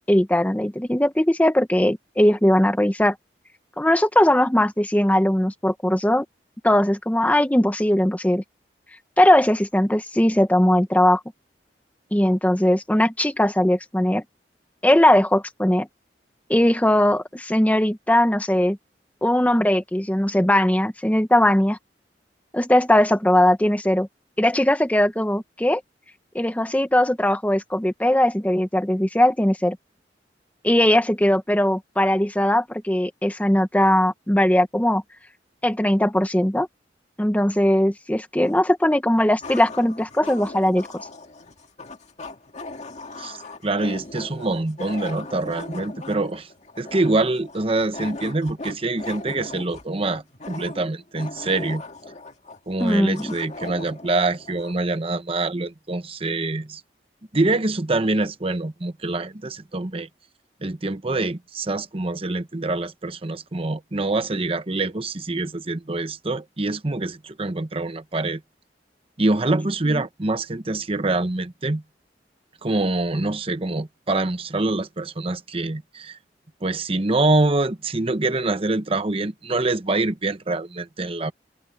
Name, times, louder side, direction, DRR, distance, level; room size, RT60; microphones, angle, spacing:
voice 1, 0.0-3.1 3.8-6.2 6.6-8.4 9.2-11.2 12.1-14.2 14.8-15.9 16.5-18.8 19.2-21.8 22.5-24.1 24.4-25.8 26.3-29.8 30.6-35.0 35.6-36.7 37.2-40.9 52.8-53.3, left 1 dB, 10° left, 0.9 m, -19 dB
sound 1, 38.4-38.5 39.4-54.8, left 2 dB, 40° left, 2.1 m, -39 dB
voice 2, 43.6-46.5 46.8-51.8 52.7-56.8 57.3-60.1 60.6-68.4 69.2-71.8 72.6-76.2 76.6-81.3, right 2 dB, 35° right, 1.0 m, -25 dB
head